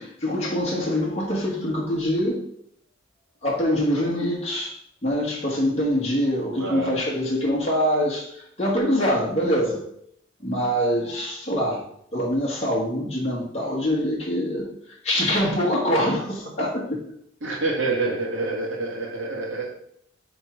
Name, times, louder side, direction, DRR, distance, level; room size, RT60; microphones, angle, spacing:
voice 1, 0.0-2.4 3.4-4.8 5.0-9.8 10.4-11.8 12.1-17.0, equal, 35° left, -4 dB, 1.5 m, -24 dB
voice 2, 6.6-7.0 17.4-19.7, right 3 dB, 75° right, -3 dB, 1.9 m, -27 dB
6.0 x 4.5 x 5.1 m, 0.69 s
head